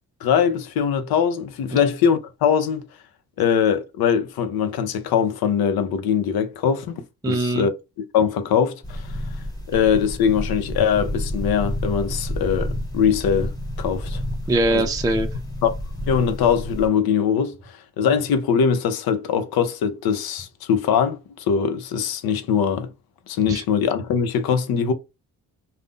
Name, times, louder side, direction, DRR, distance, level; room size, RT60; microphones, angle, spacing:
voice 1, 0.2-2.8 3.4-7.7 8.0-9.0 9.7-13.5 13.8-14.2 14.7-14.9 15.6-15.7 16.1-17.6 18.0-21.2 21.5-22.9 23.3-24.9, left 7 dB, 80° left, 0.6 m, -21 dB
voice 2, 7.2-7.7 14.5-15.3 23.5-23.6, right 2 dB, 10° right, 0.4 m, -21 dB
sound 1, 8.8-16.9, left 1 dB, 10° left, 1.2 m, -30 dB
2.5 x 2.0 x 3.6 m
cardioid pair, 75°, 36 cm